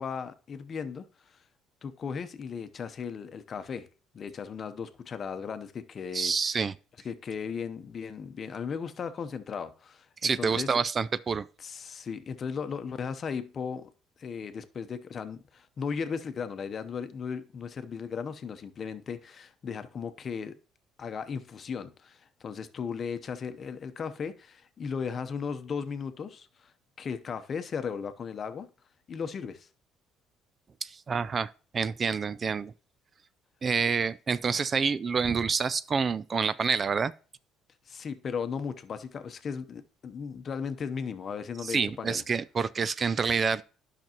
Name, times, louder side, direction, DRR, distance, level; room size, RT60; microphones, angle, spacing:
voice 1, 0.0-1.4 1.8-3.9 4.1-6.3 7.0-10.7 11.6-13.9 14.2-20.5 21.0-26.7 27.0-28.7 29.1-29.7 37.9-42.2, left 6 dB, 40° left, 0.8 m, -36 dB
voice 2, 6.1-6.7 10.2-11.5 30.8-32.7 33.6-37.1 41.6-43.6, right 5 dB, 35° right, 0.3 m, -28 dB
10.5 x 6.0 x 2.9 m
cardioid pair, 105°, 0 cm